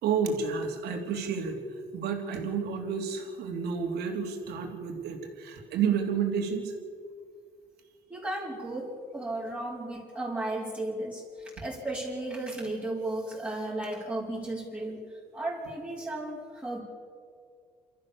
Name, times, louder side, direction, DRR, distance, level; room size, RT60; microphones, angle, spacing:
voice 1, 0.0-1.6 1.9-6.7, right 6 dB, 75° right, 3 dB, 3.4 m, -30 dB
voice 2, 8.1-16.8, right 1 dB, 10° right, -7 dB, 4.8 m, -35 dB
28.5 x 14.0 x 7.2 m, 2.1 s
cardioid pair, 110°, 17 cm